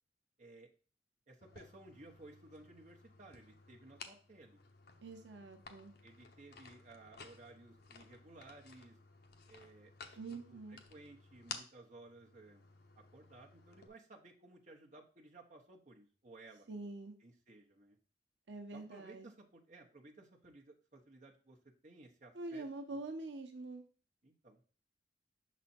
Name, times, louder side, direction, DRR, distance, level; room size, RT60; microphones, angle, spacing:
voice 1, 0.4-0.7 1.3-4.6 6.0-9.0 9.5-12.6 13.0-16.7 17.2-18.0 18.7-23.0 24.2-24.6, right 2 dB, 45° right, 0 dB, 1.2 m, -58 dB
sound 1, 1.4-13.9, left 5 dB, 65° left, 0.9 m, -55 dB
voice 2, 5.0-5.9 10.2-10.8 16.7-17.1 18.5-19.3 22.3-23.9, right 2 dB, 85° right, 5 dB, 0.9 m, -45 dB
6.1 x 4.2 x 4.3 m, 0.39 s
head